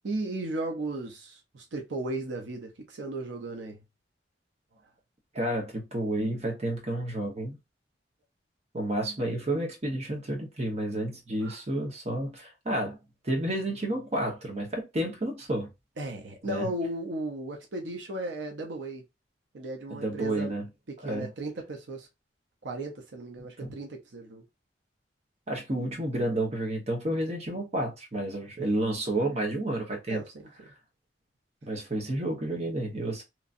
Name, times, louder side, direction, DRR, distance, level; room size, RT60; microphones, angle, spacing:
voice 1, 0.0-3.8 11.4-11.6 16.0-19.0 19.5-20.5 21.0-22.1 22.6-24.4 28.6-28.7 30.1-30.7, right 2 dB, 80° right, 0.6 m, -36 dB
voice 2, 5.3-7.6 8.7-13.0 13.2-15.7 16.4-16.7 19.9-20.7 21.0-21.3 23.4-23.8 25.5-30.2 31.6-33.2, right 1 dB, 35° right, 1.1 m, -30 dB
2.9 x 2.6 x 2.5 m
head